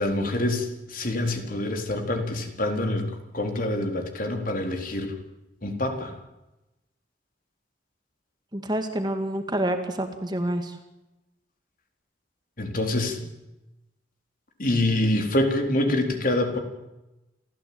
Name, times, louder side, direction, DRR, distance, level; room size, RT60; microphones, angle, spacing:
voice 1, 0.0-3.1 3.3-5.2 5.6-6.1 12.6-13.2 14.6-16.6, left 1 dB, 45° left, 4 dB, 4.1 m, -26 dB
voice 2, 8.5-10.8, right 1 dB, 20° right, 6 dB, 2.1 m, -28 dB
28.0 x 15.0 x 8.8 m, 0.97 s
head